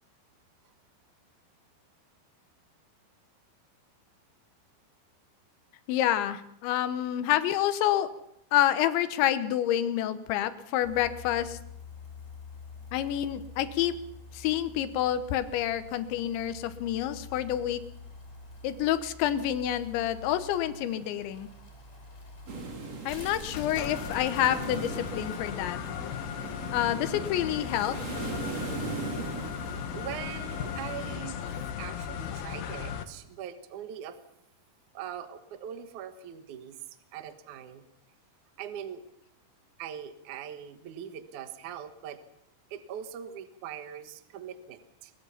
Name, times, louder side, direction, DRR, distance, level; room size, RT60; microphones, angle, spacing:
voice 1, 5.9-8.1 8.5-11.6 12.9-13.9 14.3-17.8 18.6-21.5 23.1-25.8 26.7-28.0, left 11 dB, 85° left, 11 dB, 3.4 m, -28 dB
sound 1, 10.8-26.5 26.9-27.0, left 4 dB, 15° left, 4.0 m, -47 dB
sound 2, 22.5-31.2, right 4 dB, 40° right, 3.8 m, -39 dB
sound 3, 23.5-33.0, left 9 dB, 65° left, 2.6 m, -37 dB
voice 2, 29.9-34.2 34.9-36.8 37.1-37.8 38.6-39.0 39.8-42.2 42.7-45.1, right 9 dB, 65° right, 8 dB, 2.1 m, -41 dB
22.0 x 21.5 x 5.8 m, 0.77 s
omnidirectional pair, 5.2 m